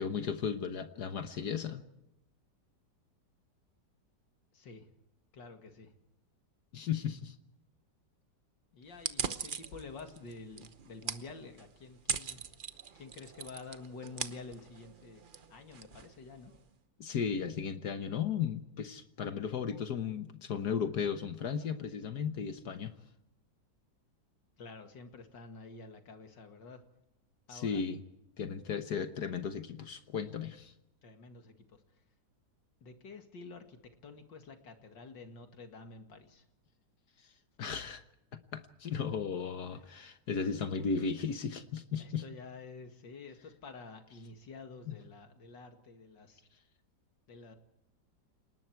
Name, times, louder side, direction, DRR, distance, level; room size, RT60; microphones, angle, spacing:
voice 1, 0.0-1.8 6.7-7.3 17.0-22.9 27.5-28.0 28.4-30.7 37.6-38.0 38.3-42.2 44.9-45.0, left 6 dB, 65° left, 9 dB, 1.6 m, -35 dB
voice 2, 4.5-4.9 5.3-5.9 8.7-12.4 12.9-15.2 15.5-16.5 24.6-26.8 27.5-27.8 31.0-32.0 32.8-36.5 39.7-39.8 42.0-46.4 47.3-47.6, left 4 dB, 85° left, 6 dB, 2.7 m, -49 dB
sound 1, 8.9-16.7, right 6 dB, 40° right, 0.8 m, -41 dB
29.0 x 19.5 x 4.7 m, 0.87 s
omnidirectional pair, 1.9 m